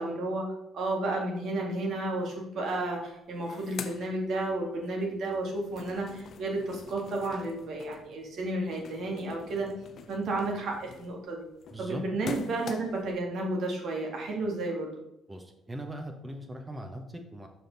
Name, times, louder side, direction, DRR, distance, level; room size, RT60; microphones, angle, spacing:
voice 1, 0.0-9.7 10.1-11.4 11.8-14.9, right 2 dB, 65° right, 0 dB, 2.0 m, -32 dB
sound 1, 2.8-2.9 3.1-4.9 5.3-13.2, left 6 dB, 55° left, 0.6 m, -46 dB
voice 2, 11.7-12.0 15.3-17.5, right 1 dB, 25° right, 4 dB, 1.1 m, -40 dB
6.2 x 5.4 x 4.0 m, 0.83 s
hypercardioid pair, 55°, 0 cm